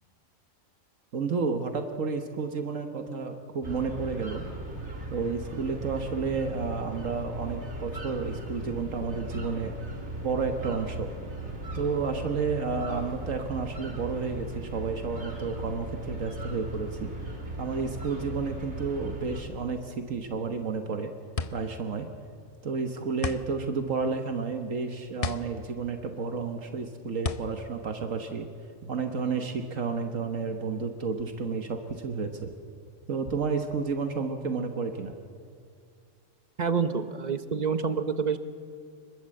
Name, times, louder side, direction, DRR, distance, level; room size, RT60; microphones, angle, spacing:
voice 1, 1.1-4.5 5.1-9.7 10.2-11.1 11.7-17.1 17.6-21.1 21.5-22.1 22.6-28.5 28.8-32.5 33.1-35.1, right 4 dB, 70° right, 5 dB, 1.7 m, -31 dB
sound 1, 3.6-19.4, right 2 dB, 55° right, 3.3 m, -38 dB
sound 2, 20.6-28.9, left 4 dB, 35° left, 0.7 m, -37 dB
voice 2, 36.6-38.4, right 5 dB, 35° right, 10 dB, 1.0 m, -27 dB
25.5 x 22.0 x 7.7 m, 2.3 s
omnidirectional pair, 1.4 m